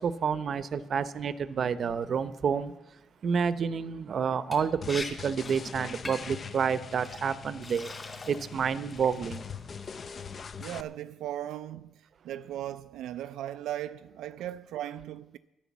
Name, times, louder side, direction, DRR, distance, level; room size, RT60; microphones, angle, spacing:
voice 1, 0.0-2.7 3.2-7.9 8.3-9.4, right 6 dB, 55° right, 0.7 m, -29 dB
Liquid, 4.5-4.6 4.9-5.1 5.4-5.6 6.0-6.4 7.0-7.2 7.6-8.5 8.9-9.3, left 3 dB, 25° left, 2.5 m, -40 dB
sound 1, 4.8-10.8, left 6 dB, 45° left, 0.6 m, -43 dB
voice 2, 10.6-15.4, right 12 dB, 85° right, 0.4 m, -37 dB
10.5 x 10.5 x 7.2 m
cardioid pair, 90°, 0 cm